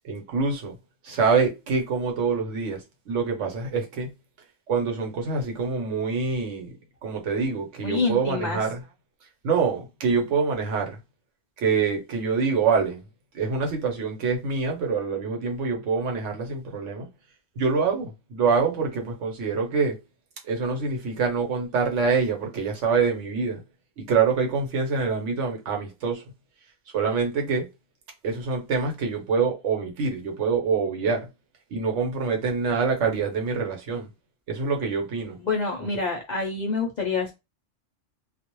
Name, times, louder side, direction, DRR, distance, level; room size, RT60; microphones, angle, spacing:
voice 1, 0.0-0.7 1.0-4.1 4.7-6.8 7.0-8.8 9.4-11.0 11.6-13.0 13.3-17.1 17.6-20.0 20.5-23.6 24.0-26.2 26.9-27.7 28.2-31.3 31.7-34.1 34.5-35.4 35.8-35.9, right 5 dB, 90° right, 1.1 m, -25 dB
voice 2, 7.8-8.6 35.4-37.3, left 4 dB, 55° left, 0.5 m, -27 dB
2.4 x 2.0 x 2.9 m
omnidirectional pair, 1.2 m